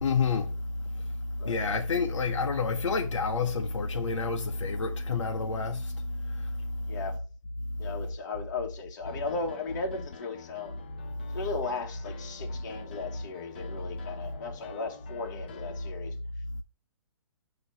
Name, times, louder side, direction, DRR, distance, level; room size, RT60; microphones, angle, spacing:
voice 1, 0.0-0.5 1.5-5.9 6.2-6.5, left 4 dB, 65° left, 0.8 m, -29 dB
voice 2, 7.8-10.8 11.3-16.1, left 3 dB, 35° left, 1.2 m, -36 dB
Piano, 9.0-15.9, left 6 dB, 20° left, 0.4 m, -48 dB
6.0 x 2.9 x 5.4 m
hypercardioid pair, 175°, 17 cm